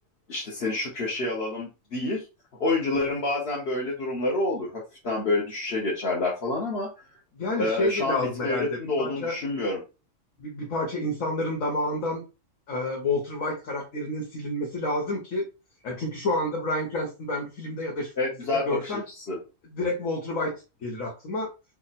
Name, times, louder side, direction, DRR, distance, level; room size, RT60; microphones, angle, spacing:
voice 1, 0.3-2.2 2.6-6.9 7.6-9.8 18.2-19.4, left 2 dB, 50° left, -5 dB, 1.2 m, -28 dB
voice 2, 7.3-9.3 10.4-12.2 12.7-15.5 15.8-18.1 18.5-19.0 19.7-21.5, left 2 dB, 75° left, -1 dB, 1.3 m, -29 dB
3.5 x 2.2 x 4.1 m, 0.29 s
omnidirectional pair, 1.4 m